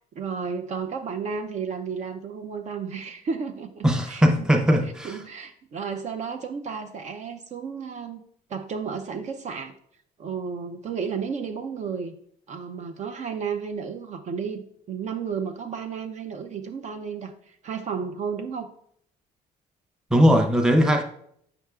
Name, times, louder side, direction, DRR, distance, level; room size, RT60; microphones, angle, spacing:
voice 1, 0.2-4.5 5.0-8.2 8.5-9.7 10.2-12.1 12.5-18.7, right 6 dB, 45° right, 4 dB, 0.5 m, -33 dB
voice 2, 3.8-5.2 20.1-21.0, equal, 5° right, 3 dB, 0.7 m, -19 dB
7.9 x 5.5 x 2.4 m, 0.68 s
cardioid pair, 110°, 17 cm